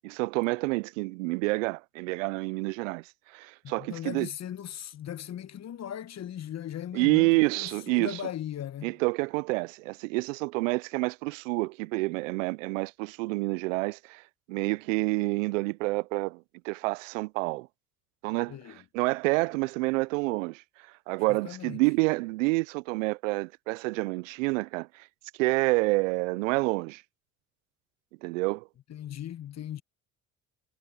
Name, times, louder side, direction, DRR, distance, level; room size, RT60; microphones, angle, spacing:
voice 1, 0.0-4.3 6.9-8.2 8.8-14.2 14.5-17.7 18.2-20.6 21.1-25.1 25.4-27.0 28.2-28.7, right 24 dB, 85° right, 0.5 m, -28 dB
voice 2, 3.6-8.9 18.5-18.8 21.3-21.8 28.9-29.8, left 10 dB, 45° left, 1.2 m, -38 dB
hypercardioid pair, 65°, 37 cm